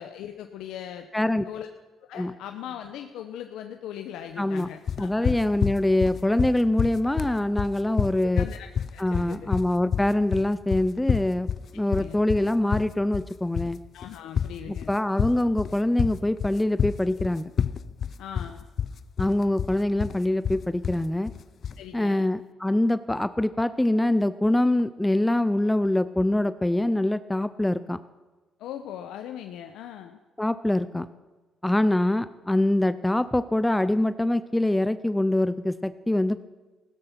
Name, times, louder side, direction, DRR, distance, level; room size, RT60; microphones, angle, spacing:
voice 1, 0.0-1.1 1.4-1.7 2.0-5.4 8.2-9.5 11.9-12.2 13.9-14.9 18.2-18.7 21.8-22.3 28.6-30.2, left 10 dB, 90° left, 6 dB, 0.8 m, -39 dB
voice 2, 1.1-1.4 2.1-2.3 4.4-4.7 5.0-8.5 9.0-11.5 11.7-13.8 14.7-17.5 19.2-21.3 21.9-28.0 30.4-31.1 31.6-36.4, left 1 dB, 10° left, 14 dB, 0.5 m, -24 dB
sound 1, 4.9-21.8, left 7 dB, 55° left, 0.5 m, -29 dB
16.0 x 13.0 x 5.9 m, 1.2 s
cardioid pair, 90°, 0 cm